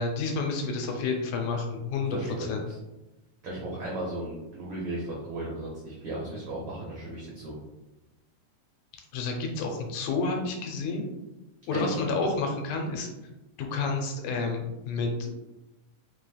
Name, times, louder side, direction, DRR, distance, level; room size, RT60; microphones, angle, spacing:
voice 1, 0.0-2.7 9.1-11.1 11.7-13.1 13.6-15.3, left 3 dB, 80° left, 2 dB, 2.0 m, -30 dB
voice 2, 2.0-2.6 3.4-7.6 11.7-12.0, right 1 dB, 85° right, -4 dB, 1.2 m, -35 dB
5.1 x 3.1 x 2.3 m, 1.0 s
omnidirectional pair, 3.4 m